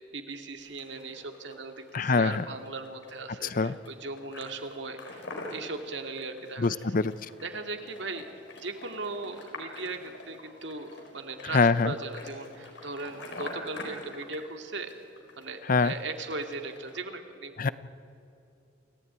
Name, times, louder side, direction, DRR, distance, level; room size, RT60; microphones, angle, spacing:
voice 1, 0.1-6.7 7.4-8.3 8.6-14.9 15.4-17.5, right 3 dB, 65° right, 5 dB, 2.2 m, -38 dB
sound 1, 0.6-17.0, left 2 dB, 65° left, 4.5 m, -46 dB
voice 2, 1.9-2.4 3.5-3.7 6.6-7.1 11.5-11.9 15.7-15.9 17.6-17.7, left 4 dB, 45° left, 16 dB, 0.6 m, -24 dB
28.0 x 15.5 x 9.5 m, 2.7 s
head